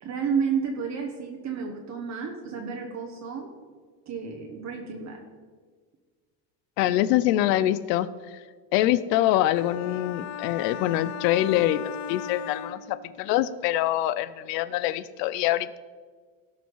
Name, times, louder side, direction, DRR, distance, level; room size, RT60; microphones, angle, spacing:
voice 1, 0.0-3.5 4.1-5.2, right 6 dB, 35° right, 2 dB, 1.2 m, -31 dB
voice 2, 6.8-8.4 8.7-15.8, left 13 dB, 85° left, 15 dB, 0.7 m, -25 dB
sound 1, 9.5-13.4, left 8 dB, 35° left, 0.5 m, -37 dB
17.0 x 5.7 x 4.7 m, 1.6 s
supercardioid pair, 130°, 48 cm